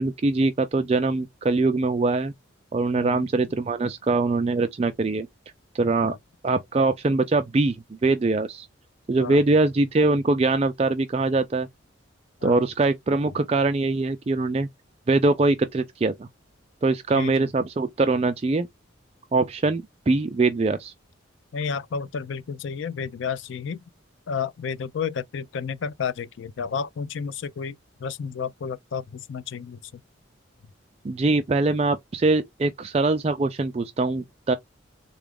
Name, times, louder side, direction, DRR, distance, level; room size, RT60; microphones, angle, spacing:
voice 1, 0.0-2.3 2.7-5.3 5.7-6.1 6.4-8.7 9.1-11.7 12.4-14.7 15.1-16.3 16.8-18.7 19.3-20.9 31.0-34.6, right 3 dB, 30° right, 0.3 m, -23 dB
voice 2, 3.0-3.3 6.0-6.2 9.2-9.4 12.4-12.6 17.1-17.5 21.5-23.8 24.3-30.0, left 6 dB, 65° left, 0.4 m, -31 dB
3.8 x 2.4 x 3.4 m
head